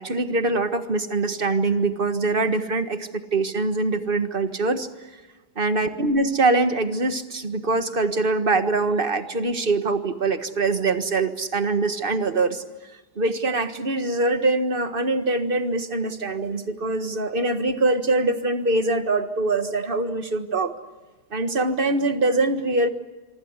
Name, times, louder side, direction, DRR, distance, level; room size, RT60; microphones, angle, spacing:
voice 1, 0.0-4.9 5.6-12.6 13.2-20.7 21.3-22.9, right 3 dB, 35° right, 9 dB, 1.8 m, -23 dB
27.0 x 25.0 x 8.2 m, 1.2 s
omnidirectional pair, 1.7 m